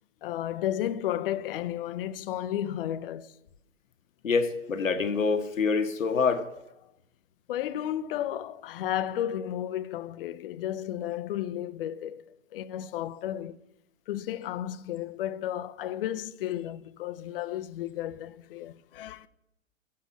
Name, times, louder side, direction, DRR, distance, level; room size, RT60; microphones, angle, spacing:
voice 1, 0.2-3.3 7.5-12.2 12.5-13.6 14.1-19.3, left 11 dB, 45° left, 0.5 m, -33 dB
voice 2, 4.2-6.4, left 5 dB, 75° left, 1.3 m, -26 dB
7.6 x 7.5 x 8.4 m
figure-of-eight pair, 110°, 39 cm